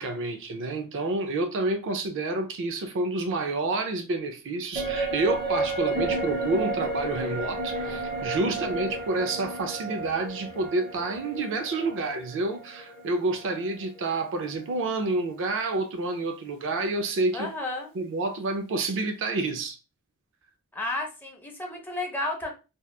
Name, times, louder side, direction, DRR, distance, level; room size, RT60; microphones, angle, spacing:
voice 1, 0.0-17.5 17.9-19.8, right 2 dB, 55° right, 0.4 m, -29 dB
sound 1, 4.7-14.3 14.6-14.7, right 2 dB, 40° right, 0.8 m, -32 dB
voice 2, 17.3-17.9 20.7-22.5, left 2 dB, 10° left, 0.5 m, -32 dB
2.8 x 2.2 x 2.2 m
head